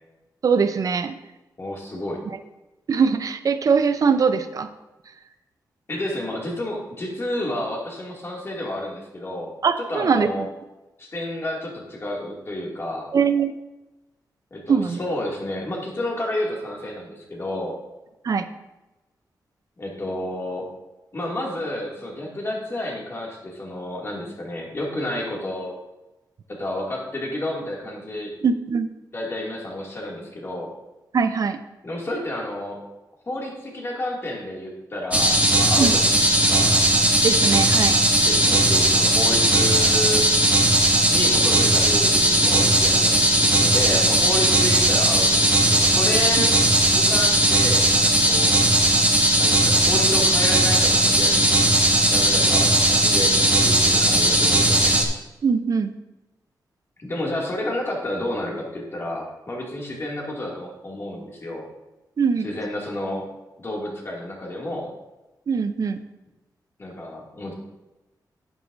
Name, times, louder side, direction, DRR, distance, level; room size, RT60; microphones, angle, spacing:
voice 1, 0.4-1.2 2.9-4.7 9.6-10.5 13.1-13.6 14.7-15.0 18.2-18.5 28.4-28.9 31.1-31.6 35.8-35.9 37.2-38.0 55.4-55.9 62.2-62.5 65.5-66.0, right 5 dB, 55° right, 10 dB, 0.6 m, -21 dB
voice 2, 1.6-2.2 5.9-10.5 11.0-13.1 14.5-17.8 19.8-20.7 21.1-25.7 26.5-28.3 29.1-30.7 31.8-32.8 33.3-36.7 38.3-40.3 41.1-46.5 46.9-48.6 49.4-51.5 52.1-55.0 57.0-61.6 62.4-63.2 63.6-64.9 66.8-67.5, left 1 dB, 35° left, -2 dB, 2.4 m, -30 dB
sound 1, 35.1-55.0, right 1 dB, 20° right, 1.5 m, -18 dB
11.0 x 9.2 x 2.6 m, 1.0 s
wide cardioid pair, 125°, 7 cm